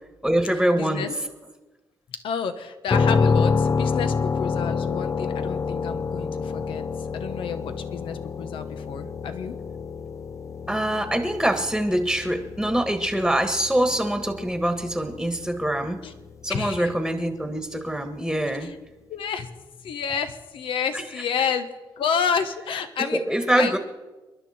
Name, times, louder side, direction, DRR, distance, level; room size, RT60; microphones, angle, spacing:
voice 1, 0.2-1.1 10.7-16.0 16.4-18.7 20.9-21.0 23.1-23.8, right 1 dB, ahead, 6 dB, 1.5 m, -24 dB
voice 2, 0.7-1.1 2.1-6.8 7.1-9.6 16.0-16.1 16.5-16.9 18.6-18.7 19.1-19.5 19.8-21.7 22.0-23.2 23.5-23.8, left 6 dB, 90° left, 9 dB, 1.2 m, -29 dB
sound 1, 2.9-16.6, left 5 dB, 35° left, 0.5 m, -28 dB
27.0 x 11.5 x 4.4 m, 1.2 s
cardioid pair, 80°, 9 cm